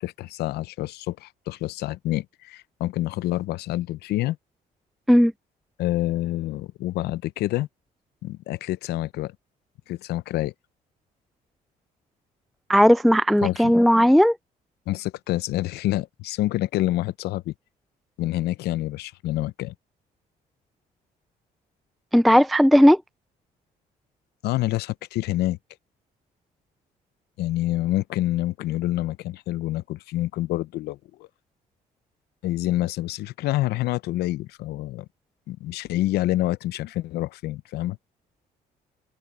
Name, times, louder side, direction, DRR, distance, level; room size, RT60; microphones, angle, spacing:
voice 1, 0.0-4.4 5.8-7.7 8.2-9.4 9.9-10.5 13.4-13.7 14.9-17.5 18.2-19.7 24.4-25.6 27.4-31.3 32.4-35.1 35.5-38.0, left 16 dB, 75° left, 0.6 m, -27 dB
voice 2, 12.7-14.4 22.1-23.0, equal, ahead, 0.3 m, -16 dB
cardioid pair, 110°, 17 cm